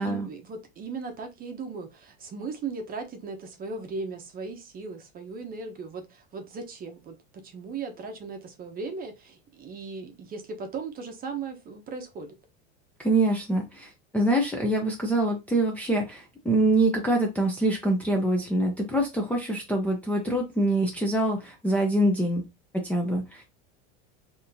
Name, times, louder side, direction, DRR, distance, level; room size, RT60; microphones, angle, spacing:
voice 1, 0.0-12.4, right 4 dB, 30° right, 5 dB, 0.8 m, -37 dB
voice 2, 13.0-22.4 22.8-23.4, right 1 dB, 5° left, -1 dB, 0.5 m, -25 dB
4.1 x 2.9 x 2.6 m, 0.24 s
supercardioid pair, 140°, 32 cm